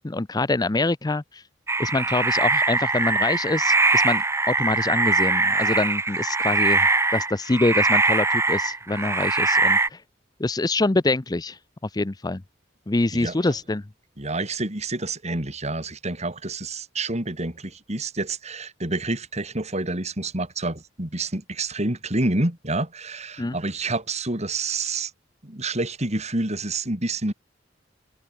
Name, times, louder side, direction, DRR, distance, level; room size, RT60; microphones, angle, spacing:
voice 1, 0.0-1.4 1.8-10.0 10.4-11.6 11.9-12.4 12.9-13.8 23.4-23.6, left 2 dB, 20° left, 0.6 m, -25 dB
sound 1, 1.7-9.9, right 3 dB, 15° right, 0.9 m, -22 dB
voice 2, 14.2-25.1 25.4-27.3, right 2 dB, 35° right, 3.6 m, -28 dB
head